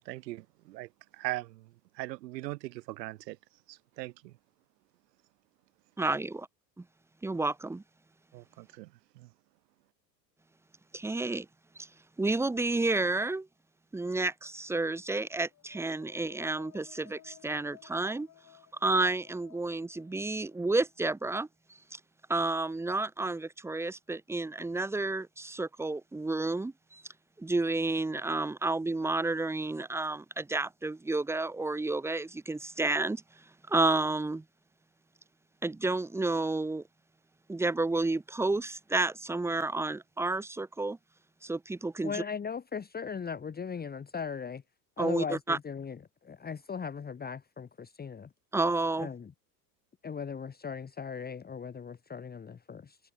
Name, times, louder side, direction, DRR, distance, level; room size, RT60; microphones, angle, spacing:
voice 1, 0.0-3.4 3.7-4.3 8.3-9.3, right 18 dB, 80° right, 0.8 m, -40 dB
voice 2, 6.0-6.5 6.8-6.9 7.2-7.8 10.9-11.5 11.8-11.9 12.2-13.5 13.9-18.3 18.8-21.5 21.9-22.0 22.3-27.0 27.4-33.2 33.7-34.4 35.6-36.8 37.5-41.0 41.4-42.2 45.0-45.6 48.5-49.1, right 2 dB, 5° right, 0.6 m, -30 dB
sound 1, 15.3-21.1, left 12 dB, 40° left, 4.6 m, -58 dB
voice 3, 42.0-44.6 45.0-48.3 49.0-49.3 50.0-53.0, left 6 dB, 20° left, 1.5 m, -38 dB
hypercardioid pair, 90°, 49 cm